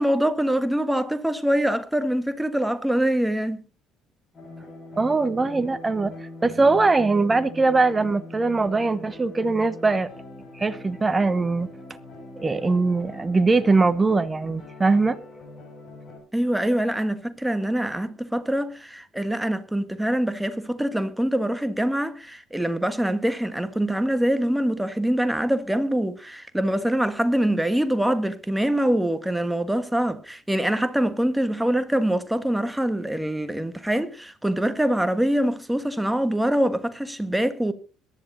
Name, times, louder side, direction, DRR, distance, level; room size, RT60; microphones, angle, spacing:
voice 1, 0.0-3.6 16.3-37.7, right 1 dB, 5° right, 1.5 m, -24 dB
sound 1, 4.3-16.2, left 2 dB, 40° left, 6.6 m, -42 dB
voice 2, 5.0-6.1 6.4-10.1 10.6-11.7 12.4-15.2, right 3 dB, 20° right, 1.0 m, -21 dB
22.5 x 11.0 x 2.8 m
figure-of-eight pair, 55°, 0 cm